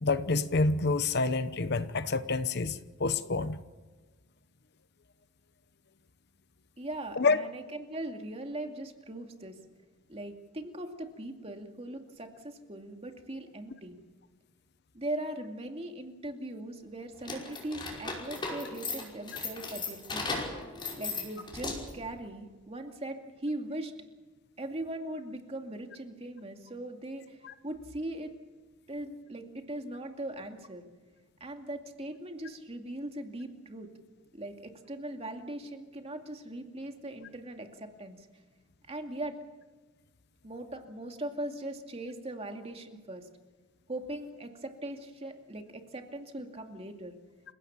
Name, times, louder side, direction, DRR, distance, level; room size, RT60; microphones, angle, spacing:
voice 1, 0.0-3.6 7.2-7.4 27.4-27.5, left 3 dB, 55° left, 13 dB, 0.9 m, -28 dB
voice 2, 6.8-9.6 10.1-14.0 14.9-20.3 21.0-23.9 24.6-28.3 28.9-30.9 31.4-33.9 34.3-38.3 38.9-39.3 40.4-43.3 43.9-47.2, right 1 dB, 30° right, 4 dB, 2.4 m, -40 dB
sound 1, 17.2-22.0, left 3 dB, 25° left, 5.4 m, -37 dB
28.5 x 17.0 x 7.2 m, 1.3 s
head